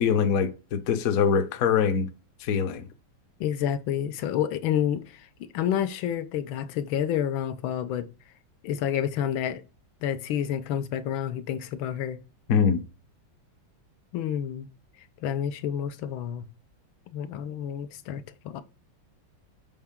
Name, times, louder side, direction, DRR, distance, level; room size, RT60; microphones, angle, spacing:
voice 1, 0.0-2.1 2.4-2.8 12.5-12.8, left 7 dB, 60° left, 1.0 m, -23 dB
voice 2, 3.4-5.3 5.5-8.1 8.6-9.6 10.0-12.2 14.1-14.7 15.2-16.5 17.1-18.6, left 9 dB, 85° left, 1.5 m, -29 dB
7.2 x 4.4 x 3.6 m
omnidirectional pair, 2.2 m